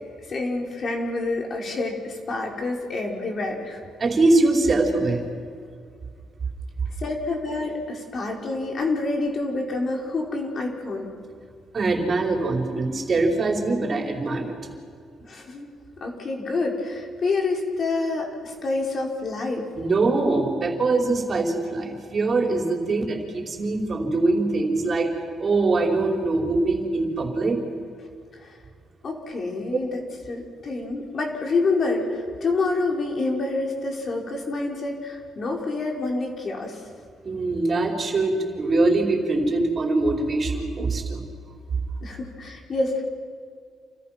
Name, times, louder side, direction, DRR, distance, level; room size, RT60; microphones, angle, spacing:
voice 1, 0.2-3.8 7.0-11.1 15.2-15.7 16.0-19.7 28.3-28.5 29.0-30.0 30.3-36.8 42.0-43.0, left 3 dB, 45° left, 1 dB, 5.1 m, -27 dB
voice 2, 4.0-5.2 11.7-14.5 19.8-25.1 25.4-27.6 37.2-41.2, right 2 dB, 40° right, 2 dB, 4.8 m, -23 dB
29.5 x 28.5 x 6.1 m, 2.1 s
cardioid pair, 90°, 0 cm